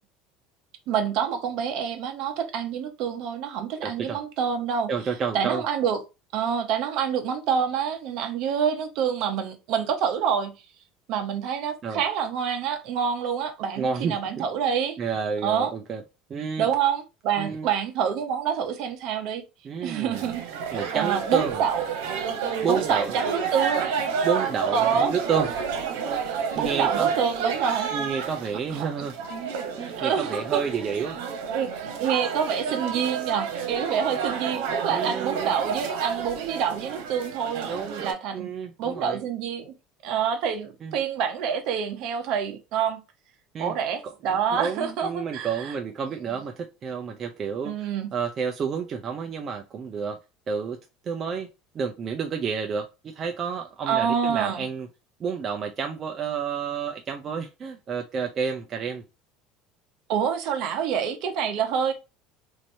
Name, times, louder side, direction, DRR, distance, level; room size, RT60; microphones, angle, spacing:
voice 1, 0.9-4.9 5.3-6.0 6.3-10.5 11.1-15.0 15.4-15.7 16.6-19.4 19.8-21.8 22.7-23.9 24.7-25.4 26.5-27.9 28.7-28.8 30.0-30.6 31.5-37.7 38.0-38.5 38.8-39.7 40.0-43.0 43.6-45.7 47.6-48.1 53.9-54.6 60.1-61.9, right 7 dB, 55° right, 0.8 m, -27 dB
voice 2, 3.8-4.2 4.9-5.6 11.8-12.0 13.8-14.4 15.0-16.0 16.3-16.7 17.4-17.7 19.6-20.3 20.7-21.6 22.6-23.2 24.2-25.5 26.6-27.1 27.7-29.1 29.8-31.2 34.9-35.5 37.6-38.0 38.3-39.2 40.8-41.0 43.5-43.8 44.0-44.1 44.5-50.2 50.5-50.8 51.0-51.5 51.7-52.9 53.1-54.9 55.2-59.0, right 6 dB, 30° right, 0.4 m, -30 dB
sound 1, 20.1-38.1, right 6 dB, 90° right, 1.1 m, -30 dB
3.1 x 2.6 x 4.2 m
cardioid pair, 160°, 0 cm